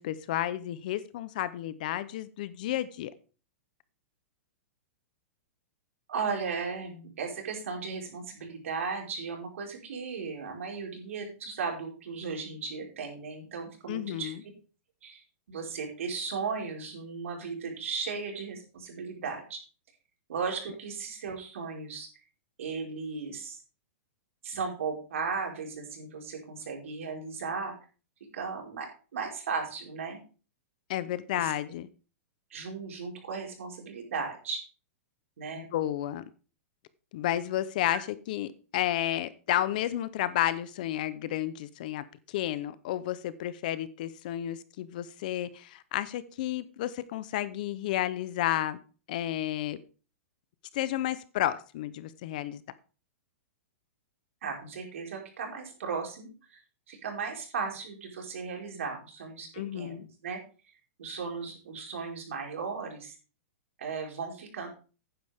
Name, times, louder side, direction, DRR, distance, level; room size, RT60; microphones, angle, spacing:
voice 1, 0.0-3.1 13.9-14.4 30.9-31.9 35.6-36.2 37.1-48.8 49.1-49.8 50.7-52.6 59.5-60.1, left 13 dB, 35° left, 16 dB, 0.6 m, -32 dB
voice 2, 6.1-14.3 15.0-15.2 15.5-19.6 20.3-22.1 22.6-23.6 24.4-27.7 28.3-30.2 31.3-31.5 32.5-34.6 35.4-35.7 54.4-56.6 56.9-60.4 61.0-63.1 63.8-64.7, right 5 dB, 70° right, 1 dB, 4.8 m, -36 dB
11.5 x 9.7 x 3.5 m, 0.35 s
supercardioid pair, 180°, 7 cm